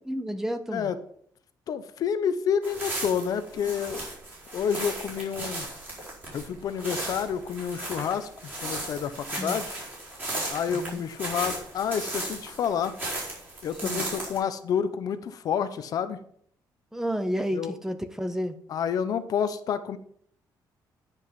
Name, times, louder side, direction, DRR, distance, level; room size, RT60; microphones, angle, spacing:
voice 1, 0.1-0.9 9.4-9.6 10.7-11.0 13.8-14.0 16.9-18.6, equal, 5° right, 10 dB, 0.7 m, -31 dB
voice 2, 1.7-4.0 4.5-5.7 6.3-9.7 10.5-13.0 13.6-16.2 17.5-17.7 18.7-20.0, left 7 dB, 55° left, 11 dB, 0.8 m, -29 dB
sound 1, 2.6-14.4, right 1 dB, 25° right, 4.3 m, -36 dB
10.0 x 5.4 x 5.7 m, 0.63 s
cardioid pair, 155°, 8 cm